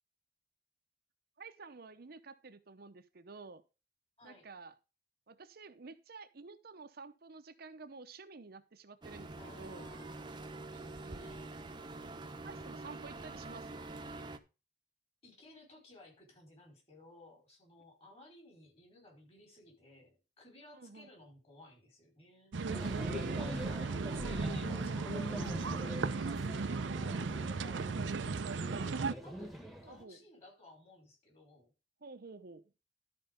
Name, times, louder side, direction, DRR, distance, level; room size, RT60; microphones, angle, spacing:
voice 1, 1.4-3.6 4.2-4.7 5.3-9.9 11.0-11.4 12.4-14.0 20.7-21.1 22.9-24.2 29.8-30.2 32.0-32.7, right 4 dB, 55° right, 9 dB, 0.8 m, -51 dB
sound 1, 9.0-14.4, right 2 dB, 25° right, 0.9 m, -46 dB
voice 2, 9.4-10.1 10.7-11.7 12.0-12.9 15.2-22.6 23.4-31.7, left 1 dB, 35° left, 1 dB, 5.0 m, -58 dB
sound 2, 22.5-29.1, right 4 dB, 90° right, 0.6 m, -36 dB
sound 3, 22.7-30.0, equal, ahead, 1.4 m, -43 dB
12.5 x 4.7 x 5.3 m, 0.30 s
head